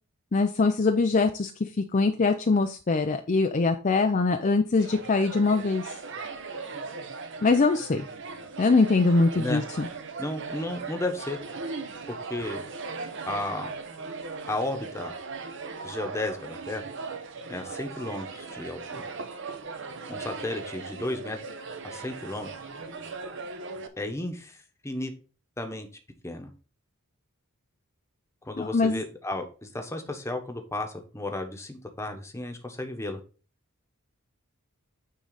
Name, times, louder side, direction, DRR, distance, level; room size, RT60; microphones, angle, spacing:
voice 1, 0.3-1.5 1.9-5.9 7.4-8.0 8.6-9.9 28.6-29.0, left 3 dB, 35° left, 5 dB, 0.4 m, -23 dB
sound 1, 4.8-23.9, right 4 dB, 55° right, 0.9 m, -38 dB
voice 2, 10.2-11.4 12.1-12.6 13.3-13.7 14.4-15.1 15.8-16.9 17.5-19.0 20.1-21.4 21.8-22.5 24.0-24.6 24.8-25.1 25.6-25.9 26.2-26.5 28.5-33.2, left 2 dB, 10° left, 5 dB, 1.1 m, -33 dB
9.3 x 3.8 x 3.9 m, 0.37 s
head